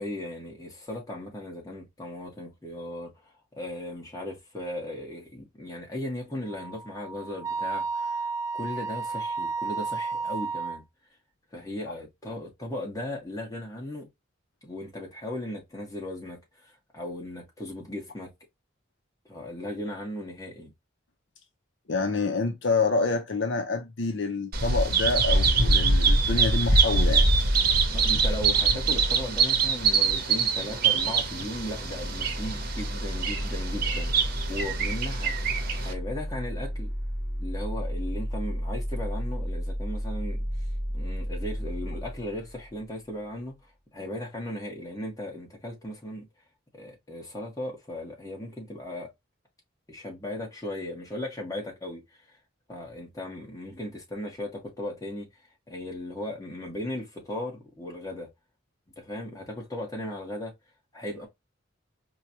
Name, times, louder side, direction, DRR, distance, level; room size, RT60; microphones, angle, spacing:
voice 1, 0.0-3.1 3.5-8.3 8.5-10.8 11.5-14.1 14.6-18.3 19.3-20.7 27.9-36.9 37.4-40.4 40.9-43.5 43.9-46.3 46.7-49.1 49.9-52.0 52.7-55.3 55.7-58.3 59.0-60.5 60.9-61.3, left 1 dB, 15° left, 1.4 m, -37 dB
Wind instrument woodwind instrument, 6.5-10.8, right 4 dB, 15° right, 0.3 m, -32 dB
voice 2, 21.9-27.3, left 3 dB, 65° left, 0.6 m, -27 dB
Bird vocalization bird call bird song, 24.5-35.9, right 4 dB, 50° right, 0.9 m, -24 dB
sound 1, 30.6-43.3, equal, ahead, 1.2 m, -33 dB
4.6 x 2.3 x 2.8 m
head